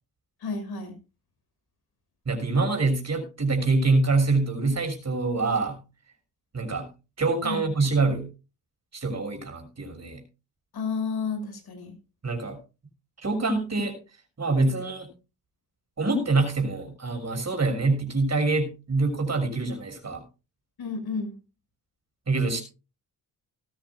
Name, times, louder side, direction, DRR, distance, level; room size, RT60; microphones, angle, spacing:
voice 1, 0.4-1.0 7.4-7.7 10.7-11.9 20.8-21.4, left 4 dB, 70° left, 6 dB, 6.1 m, -31 dB
voice 2, 2.3-5.8 6.5-6.9 7.2-8.3 8.9-10.2 12.2-12.6 13.2-14.0 14.4-15.1 16.0-20.2 22.3-22.6, right 3 dB, 40° right, 5 dB, 6.3 m, -25 dB
19.0 x 14.0 x 2.3 m, 0.31 s
cardioid pair, 75°, 39 cm